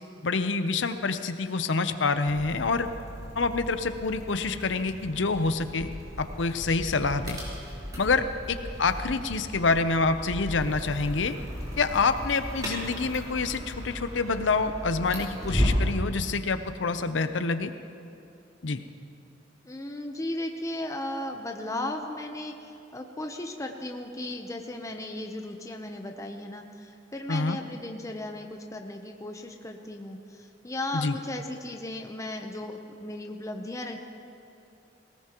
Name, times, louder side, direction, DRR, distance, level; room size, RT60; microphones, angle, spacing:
voice 1, 0.2-2.9 3.4-5.9 6.2-7.4 8.0-11.4 11.8-17.7 18.6-18.8 27.3-27.6 30.9-31.2, left 4 dB, 70° left, 10 dB, 0.7 m, -27 dB
sound 1, 2.3-16.0, equal, 20° right, 4.0 m, -35 dB
voice 2, 19.6-34.0, left 1 dB, 15° left, 3 dB, 0.7 m, -36 dB
18.5 x 18.0 x 3.0 m, 2.8 s
head